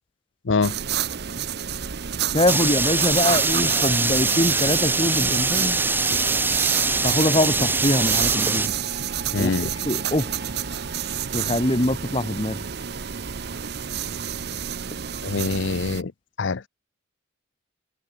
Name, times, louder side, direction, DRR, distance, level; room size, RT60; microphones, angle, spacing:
sound 1, 0.6-16.0, right 9 dB, 50° right, 0.7 m, -29 dB
voice 1, 2.3-5.8 7.0-8.7 9.4-10.5 11.3-12.7, left 1 dB, 25° left, 1.6 m, -23 dB
sound 2, 2.5-8.7, right 3 dB, 10° right, 1.2 m, -23 dB
sound 3, 3.3-15.3, right 4 dB, 35° right, 7.3 m, -42 dB
voice 2, 9.3-9.7 15.2-16.1 16.4-16.6, left 4 dB, 60° left, 0.6 m, -24 dB
head